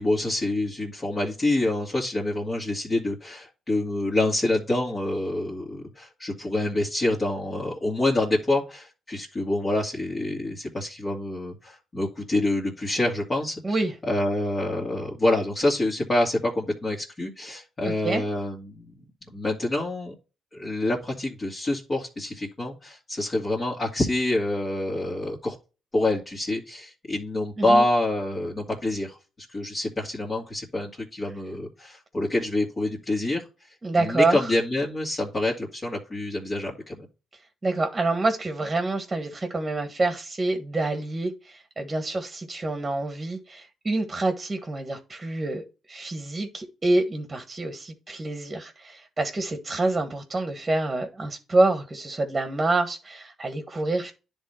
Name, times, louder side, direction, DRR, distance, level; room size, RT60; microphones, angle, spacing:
voice 1, 0.0-13.8 14.0-18.9 19.3-20.1 20.5-25.6 25.9-29.2 29.5-33.4 33.9-37.0, left 2 dB, 30° left, 2.4 m, -26 dB
voice 2, 17.8-18.2 27.6-27.8 33.8-34.4 37.6-54.1, right 2 dB, 20° right, 1.5 m, -27 dB
10.5 x 3.6 x 4.3 m
cardioid pair, 90°, 0 cm